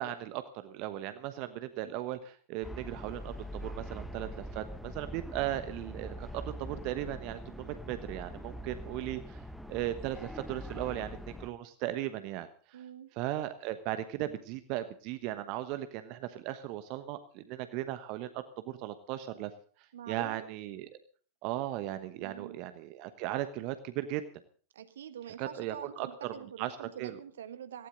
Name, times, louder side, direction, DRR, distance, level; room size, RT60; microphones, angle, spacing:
voice 1, 0.0-12.8 13.1-19.5 19.8-20.9 21.4-24.2 25.4-27.2, right 13 dB, 45° right, 11 dB, 1.2 m, -37 dB
sound 1, 2.6-11.5, equal, ahead, 1.2 m, -43 dB
voice 2, 12.7-13.1 19.9-20.5 22.2-22.6 24.7-27.9, right 9 dB, 60° right, 11 dB, 1.4 m, -45 dB
18.5 x 16.0 x 3.9 m, 0.43 s
figure-of-eight pair, 90°, 0 cm